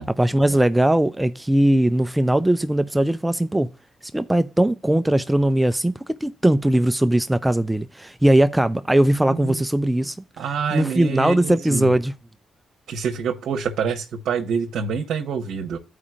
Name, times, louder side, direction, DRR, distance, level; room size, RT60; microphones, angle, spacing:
voice 1, 0.2-3.7 4.1-10.2 10.7-12.1, right 1 dB, 10° right, 0.4 m, -19 dB
voice 2, 9.3-9.6 10.4-11.9 12.9-15.8, right 6 dB, 70° right, 1.1 m, -26 dB
14.5 x 4.9 x 2.4 m
cardioid pair, 90°, 0 cm